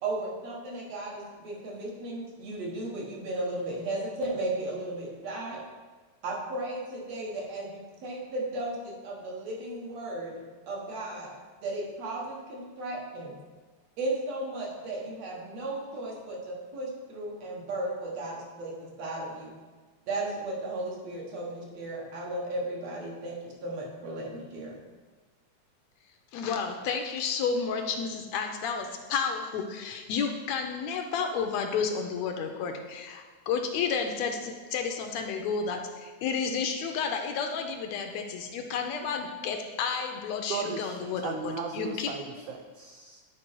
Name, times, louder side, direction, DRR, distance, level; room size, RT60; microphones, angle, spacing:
voice 1, 0.0-5.6 6.2-11.3 11.6-13.3 14.0-19.5 20.1-24.8, right 2 dB, 65° right, -2 dB, 2.5 m, -35 dB
voice 2, 26.3-42.1, left 6 dB, 80° left, 4 dB, 1.8 m, -31 dB
voice 3, 40.5-43.2, right 6 dB, 85° right, 4 dB, 1.3 m, -36 dB
9.8 x 4.5 x 4.5 m, 1.4 s
omnidirectional pair, 3.3 m